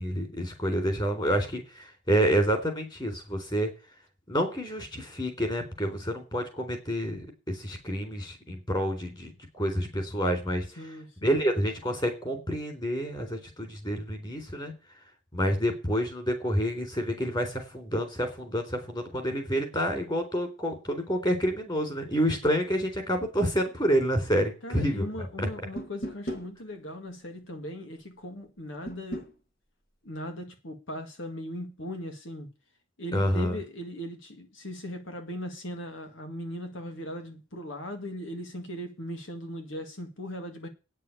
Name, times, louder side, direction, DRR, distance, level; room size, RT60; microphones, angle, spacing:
voice 1, 0.0-3.7 4.3-9.3 9.6-10.7 11.2-14.7 15.3-25.1 25.4-25.5 33.1-33.6, equal, 25° left, 3.8 m, -28 dB
voice 2, 10.8-11.6 24.6-29.2 30.0-32.5 33.0-40.7, equal, 75° left, 2.1 m, -39 dB
sound 1, 25.8-26.5 28.9-29.3, right 1 dB, 55° left, 2.3 m, -36 dB
9.3 x 7.5 x 8.4 m
head